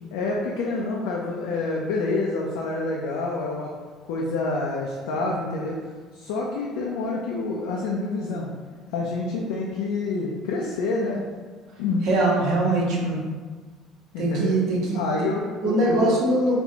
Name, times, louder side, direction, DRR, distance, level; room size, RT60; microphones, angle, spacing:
voice 1, 0.1-3.7 4.1-5.8 6.1-8.5 8.9-11.2 11.8-12.1 14.1-14.5 14.9-16.1, left 3 dB, 85° left, -3 dB, 0.4 m, -27 dB
voice 2, 12.0-13.2 14.2-15.0 15.6-16.6, right 2 dB, 70° right, -4 dB, 1.0 m, -22 dB
4.2 x 2.2 x 2.8 m, 1.5 s
supercardioid pair, 90°, 0 cm